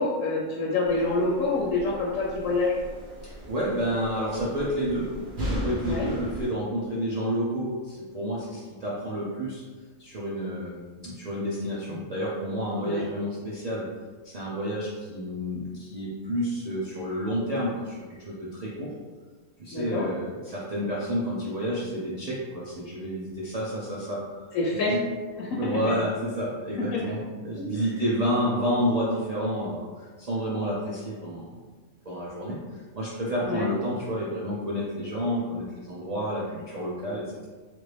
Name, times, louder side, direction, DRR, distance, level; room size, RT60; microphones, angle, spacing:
voice 1, 0.0-2.8 5.8-6.1 12.8-13.0 19.7-20.1 24.5-24.9 25.4-25.5 26.9-27.0 27.6-27.8 33.4-33.7, left 3 dB, 75° left, -4 dB, 0.9 m, -27 dB
sound 1, 0.8-6.5, equal, 45° right, 0.8 m, -37 dB
voice 2, 3.2-5.1 5.4-9.6 10.0-13.9 14.2-19.0 19.6-25.0 25.6-31.7 32.0-32.6 33.0-37.5, equal, 65° right, -7 dB, 0.3 m, -30 dB
2.9 x 2.6 x 3.2 m, 1.4 s
omnidirectional pair, 1.4 m